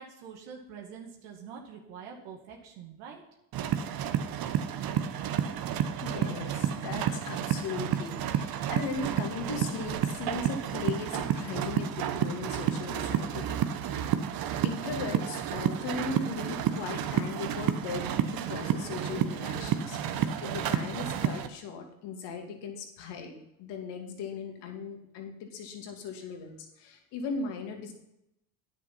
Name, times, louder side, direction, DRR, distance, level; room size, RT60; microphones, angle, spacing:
voice 1, 0.0-3.2, right 6 dB, 70° right, 1 dB, 2.2 m, -45 dB
sound 1, 3.5-21.5, right 9 dB, 50° right, 1.2 m, -31 dB
voice 2, 6.0-13.6 14.0-14.2 14.6-27.9, left 4 dB, 65° left, 3 dB, 2.6 m, -38 dB
9.9 x 8.4 x 5.6 m, 0.82 s
hypercardioid pair, 70°, 45 cm